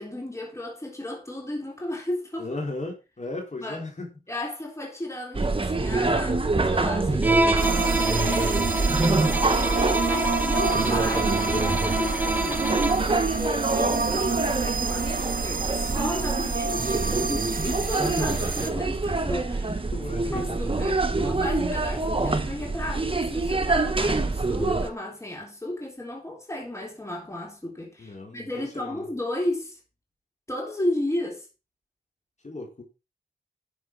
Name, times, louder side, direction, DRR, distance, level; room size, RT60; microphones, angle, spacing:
voice 1, 0.0-2.5 3.6-3.8 4.3-19.8 20.3-29.8 30.5-31.5, left 1 dB, 15° left, 3.7 m, -34 dB
voice 2, 2.4-4.2 19.9-20.6 28.0-29.0 32.4-32.8, left 2 dB, 45° left, 4.0 m, -36 dB
sound 1, 5.3-24.9, right 3 dB, 30° right, 1.4 m, -26 dB
Bowed string instrument, 7.2-13.2, right 2 dB, 10° right, 1.0 m, -27 dB
sound 2, 7.6-18.7, right 4 dB, 55° right, 1.2 m, -29 dB
11.0 x 7.1 x 4.7 m
wide cardioid pair, 85°, 17 cm